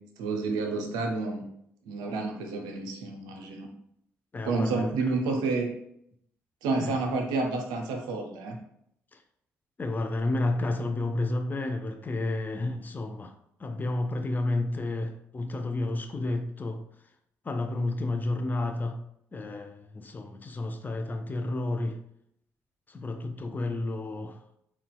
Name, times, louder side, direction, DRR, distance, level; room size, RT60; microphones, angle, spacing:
voice 1, 0.2-1.5 1.9-3.7 4.4-5.7 6.6-8.6, right 3 dB, 75° right, 3 dB, 0.5 m, -29 dB
voice 2, 4.3-4.9 6.8-7.0 9.1-9.2 9.8-13.3 13.6-16.8 17.4-19.0 19.3-22.0 22.9-24.4, left 2 dB, 25° left, 7 dB, 0.4 m, -31 dB
3.9 x 2.2 x 2.2 m, 0.74 s
hypercardioid pair, 45°, 7 cm